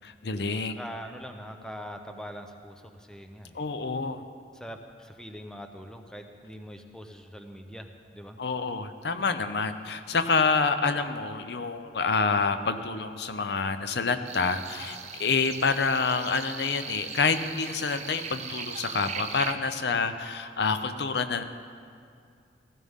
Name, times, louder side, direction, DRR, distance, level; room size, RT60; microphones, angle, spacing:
voice 1, 0.0-0.8 3.5-4.2 8.4-21.4, left 4 dB, 65° left, 10 dB, 0.7 m, -27 dB
voice 2, 0.7-3.6 4.5-8.4, equal, 5° left, 5 dB, 0.7 m, -43 dB
sound 1, 14.2-19.5, right 7 dB, 40° right, 0.8 m, -39 dB
16.0 x 16.0 x 3.6 m, 2.3 s
head